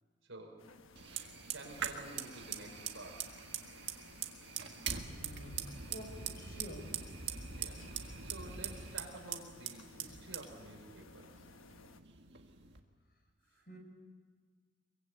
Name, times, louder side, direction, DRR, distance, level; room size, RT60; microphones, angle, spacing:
voice 1, 0.3-0.6 1.5-3.3 7.4-11.4 13.5-13.6, right 2 dB, 75° right, 1 dB, 5.8 m, -51 dB
sound 1, 0.6-12.0, left 3 dB, 85° left, 1.2 m, -59 dB
Fire, 1.0-12.8, right 7 dB, 55° right, 1.7 m, -43 dB
voice 2, 5.1-6.9 13.7-13.8, equal, 50° left, 2 dB, 5.6 m, -49 dB
23.0 x 23.0 x 8.3 m, 1.5 s
head